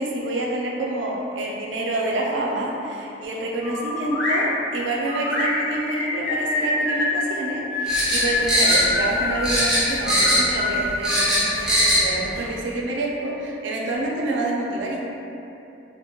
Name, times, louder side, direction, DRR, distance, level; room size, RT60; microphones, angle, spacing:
voice 1, 0.0-15.0, right 1 dB, 75° right, -2 dB, 0.4 m, -27 dB
sound 1, 3.6-4.4 5.1-7.1 7.7-9.5 10.0-11.9, left 2 dB, 80° left, 0.7 m, -26 dB
sound 2, 7.9-9.2 9.4-10.6 10.8-12.0 12.4-12.5, equal, 5° right, 0.5 m, -20 dB
2.2 x 2.1 x 2.9 m, 2.8 s
head